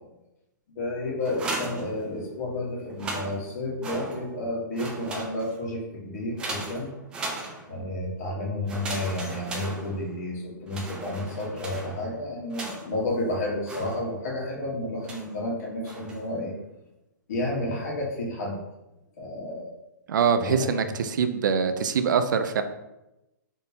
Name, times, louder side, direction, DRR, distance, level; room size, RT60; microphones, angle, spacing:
voice 1, 0.7-6.9 7.7-16.5 17.3-18.6 19.2-19.7 20.3-20.9, left 1 dB, 55° left, -3 dB, 1.3 m, -31 dB
sound 1, 1.2-2.5 2.9-4.5 4.7-5.7 6.4-7.9 8.7-10.3 10.7-13.1 13.7-14.4 15.0-15.4 15.8-16.3, right 2 dB, 10° right, 0.3 m, -37 dB
voice 2, 20.1-22.6, right 6 dB, 75° right, 9 dB, 0.4 m, -24 dB
4.0 x 3.5 x 2.8 m, 0.94 s
hypercardioid pair, 165°, 10 cm